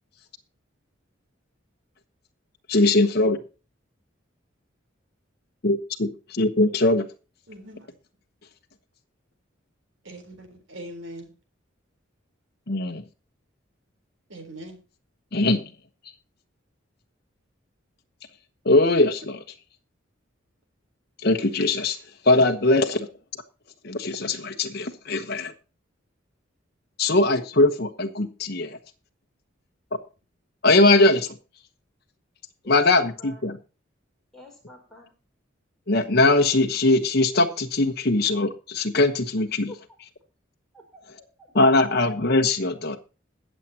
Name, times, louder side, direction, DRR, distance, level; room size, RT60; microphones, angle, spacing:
voice 1, 2.7-3.4 5.6-7.1 12.7-13.0 15.3-15.6 18.6-19.4 21.2-22.0 22.2-23.1 23.8-25.5 27.0-28.8 30.6-31.3 32.7-33.6 35.9-39.7 41.5-43.0, left 2 dB, 55° left, 4 dB, 1.1 m, -21 dB
voice 2, 7.5-7.9 10.0-11.3 14.3-14.8, right 1 dB, 80° right, 5 dB, 3.8 m, -41 dB
voice 3, 32.6-33.5 34.3-35.2 39.7-39.8 40.7-41.8, left 2 dB, ahead, -2 dB, 4.8 m, -48 dB
21.5 x 7.4 x 2.9 m, 0.33 s
head